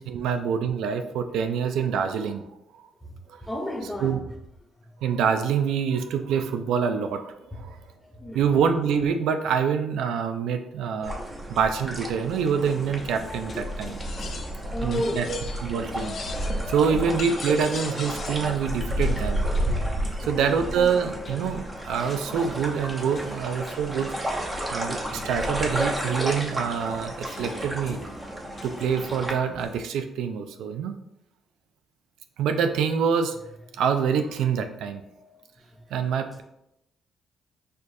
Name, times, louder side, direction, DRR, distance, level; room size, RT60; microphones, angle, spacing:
voice 1, 0.0-2.4 3.3-3.4 4.0-4.2 5.0-7.8 8.3-11.1 11.5-14.0 14.8-16.1 16.6-19.4 20.2-24.1 24.7-28.0 28.6-31.0 32.4-33.4 33.7-35.0 35.9-36.4, right 6 dB, 85° right, 7 dB, 0.3 m, -26 dB
voice 2, 3.4-4.1 7.5-8.4 11.4-11.5 14.5-15.3 20.2-20.6 33.7-33.8 34.9-35.4 35.7-35.8, left 1 dB, 10° left, 0 dB, 1.0 m, -34 dB
sound 1, 11.0-29.3, right 1 dB, 20° right, 0.9 m, -32 dB
sound 2, 12.6-29.8, left 2 dB, 40° left, 0.9 m, -43 dB
sound 3, 13.9-14.6 14.9-15.7 16.0-16.7 17.2-18.5, left 5 dB, 55° left, 0.5 m, -39 dB
6.5 x 2.4 x 2.7 m, 0.82 s
cardioid pair, 90°, 0 cm